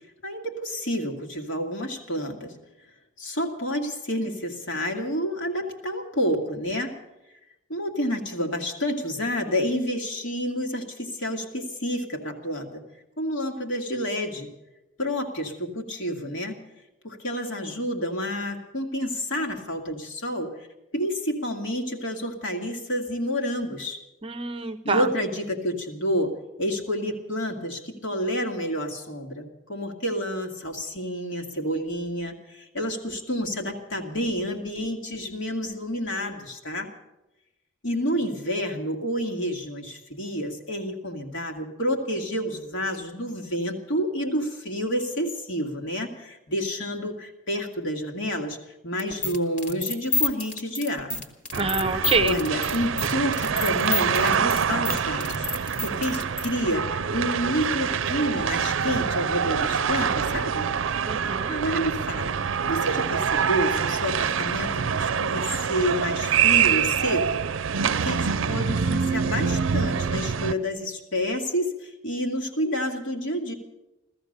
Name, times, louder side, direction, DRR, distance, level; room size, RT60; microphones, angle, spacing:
voice 1, 0.2-2.6 3.2-6.9 7.7-12.8 13.2-14.5 15.0-16.6 17.0-20.5 20.9-24.0 24.8-36.9 37.8-48.6 48.8-51.2 52.2-60.7 61.5-67.3 67.8-73.5, equal, 75° left, 2 dB, 2.1 m, -29 dB
voice 2, 24.2-25.1 51.6-52.4 61.0-61.5, right 3 dB, 30° right, 11 dB, 0.6 m, -26 dB
sound 1, 49.0-56.5, left 3 dB, 40° left, 1.5 m, -29 dB
sound 2, 51.5-70.5, right 7 dB, 90° right, 0.5 m, -25 dB
16.0 x 14.0 x 6.6 m, 0.96 s
head